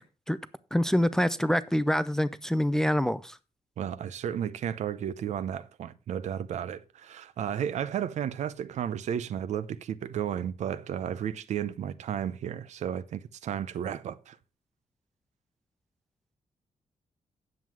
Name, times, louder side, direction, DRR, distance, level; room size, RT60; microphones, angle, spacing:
voice 1, 0.7-3.4, equal, 5° left, 0.4 m, -25 dB
voice 2, 3.8-14.4, right 9 dB, 70° right, 0.7 m, -33 dB
9.4 x 7.6 x 4.7 m
wide cardioid pair, 175°, 12 cm